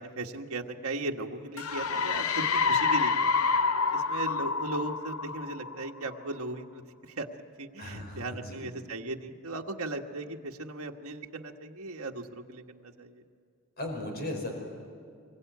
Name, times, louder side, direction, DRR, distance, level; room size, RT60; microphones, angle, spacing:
voice 1, 0.0-3.5 3.9-7.3 7.6-13.2, right 2 dB, 70° right, 2 dB, 1.6 m, -37 dB
sound 1, 1.6-6.1, left 4 dB, 70° left, 0.8 m, -28 dB
voice 2, 7.8-8.7 13.8-14.5, left 1 dB, 45° left, 2 dB, 4.9 m, -37 dB
25.0 x 22.0 x 9.3 m, 2.3 s
head